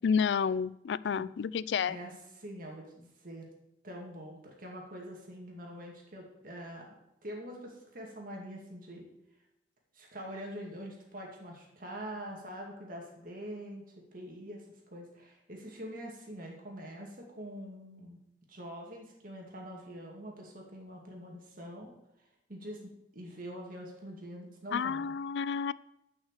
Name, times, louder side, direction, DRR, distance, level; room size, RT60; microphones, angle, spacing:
voice 1, 0.0-2.0 24.7-25.7, left 6 dB, 70° left, 18 dB, 0.3 m, -30 dB
voice 2, 1.9-3.5 3.8-6.9 7.2-9.1 9.9-13.8 14.1-18.2 18.5-21.9 22.2-25.2, equal, 50° right, -1 dB, 2.3 m, -44 dB
10.5 x 6.1 x 6.6 m, 0.86 s
head